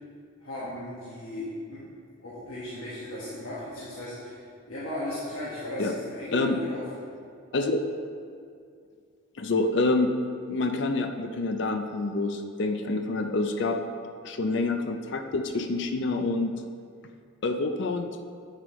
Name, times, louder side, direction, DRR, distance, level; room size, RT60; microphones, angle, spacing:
voice 1, 0.4-1.8 2.2-6.8, left 1 dB, 90° left, -9 dB, 1.5 m, -36 dB
voice 2, 9.4-10.1 10.5-13.8 14.2-16.5 17.4-18.1, left 3 dB, 55° left, 6 dB, 0.5 m, -27 dB
8.2 x 7.4 x 3.1 m, 2.3 s
head